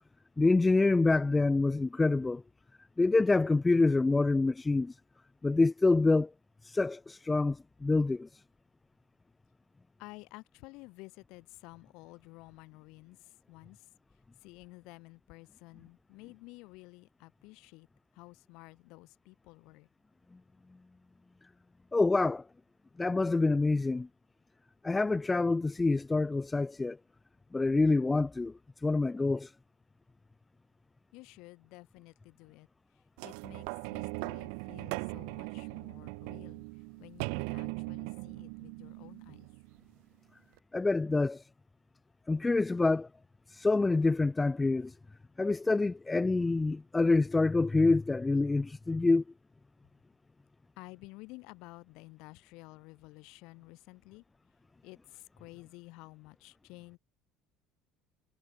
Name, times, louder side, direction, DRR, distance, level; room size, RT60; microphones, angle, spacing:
voice 1, 0.4-2.4 3.0-4.9 5.4-6.3 6.6-8.3 21.9-22.4 23.0-24.1 24.8-27.0 27.5-28.5 28.8-29.5 40.7-41.4 42.3-43.1 43.5-44.9 45.4-49.2, left 3 dB, 10° left, 0.3 m, -26 dB
voice 2, 10.0-13.9 14.4-17.9 18.1-19.9 31.1-32.7 32.9-36.6 37.0-39.5 50.8-54.2 54.8-57.0, left 24 dB, 70° left, 7.7 m, -52 dB
sound 1, 33.2-39.9 40.6-40.7, right 40 dB or more, 85° right, 3.2 m, -40 dB
cardioid pair, 145°, 0 cm